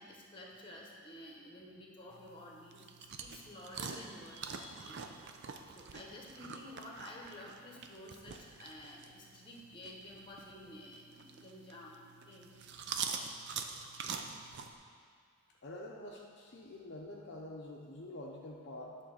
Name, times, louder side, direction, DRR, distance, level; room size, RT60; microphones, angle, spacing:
voice 1, 0.0-5.1 5.7-12.6, left 1 dB, 20° left, -2 dB, 1.2 m, -51 dB
sound 1, 2.1-14.7, right 6 dB, 50° right, 0.5 m, -45 dB
voice 2, 15.6-19.0, left 1 dB, 50° left, -2 dB, 0.6 m, -47 dB
10.5 x 3.7 x 6.5 m, 2.1 s
head